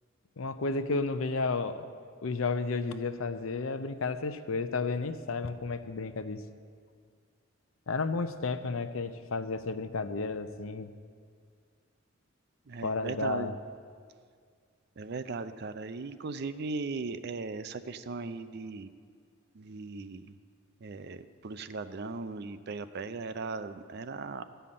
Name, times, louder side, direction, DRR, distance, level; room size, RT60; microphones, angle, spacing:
voice 1, 0.4-1.9 2.2-6.4 7.9-10.9 12.8-13.5, left 3 dB, 80° left, 10 dB, 0.6 m, -32 dB
voice 2, 12.7-13.5 15.0-18.9 19.5-20.4 20.8-24.5, right 4 dB, 50° right, 11 dB, 0.5 m, -38 dB
13.5 x 5.6 x 8.6 m, 2.1 s
head